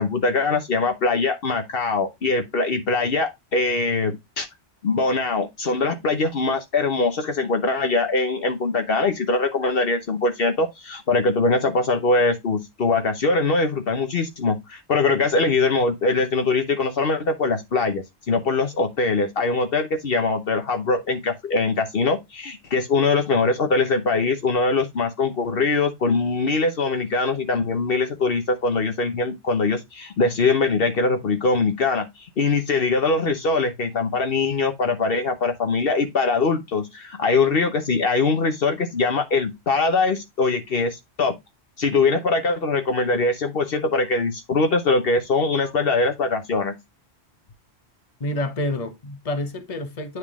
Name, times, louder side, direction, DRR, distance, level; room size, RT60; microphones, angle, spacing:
voice 1, 0.0-4.5 4.8-41.3 41.8-46.8, left 3 dB, 60° left, 1.1 m, -22 dB
voice 2, 48.2-50.2, left 1 dB, 35° left, 1.1 m, -28 dB
9.4 x 3.6 x 3.6 m
omnidirectional pair, 1.1 m